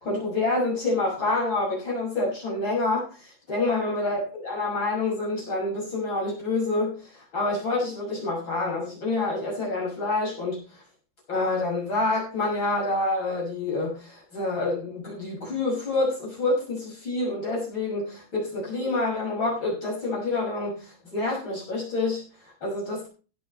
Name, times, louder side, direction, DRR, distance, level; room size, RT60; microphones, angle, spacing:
voice 1, 0.0-10.8 11.3-23.1, left 2 dB, 30° left, -5 dB, 6.6 m, -27 dB
17.0 x 10.5 x 3.3 m, 0.35 s
omnidirectional pair, 4.4 m